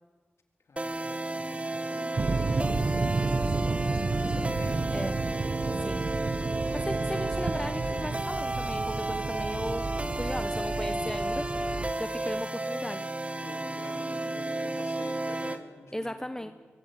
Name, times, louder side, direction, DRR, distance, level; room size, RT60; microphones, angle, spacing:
voice 1, 0.7-3.2 4.2-4.9 5.4-5.9 13.4-16.5, left 3 dB, 85° left, 4 dB, 3.9 m, -47 dB
sound 1, 0.8-15.6, right 2 dB, 30° right, 2.2 m, -33 dB
sound 2, 2.2-11.9, right 3 dB, 65° right, 1.4 m, -31 dB
voice 2, 4.9-5.2 5.8-6.1 6.7-9.9 10.1-13.1 15.9-16.5, left 1 dB, 15° left, 8 dB, 1.5 m, -36 dB
25.0 x 22.5 x 9.6 m, 1.4 s
cardioid pair, 40°, 5 cm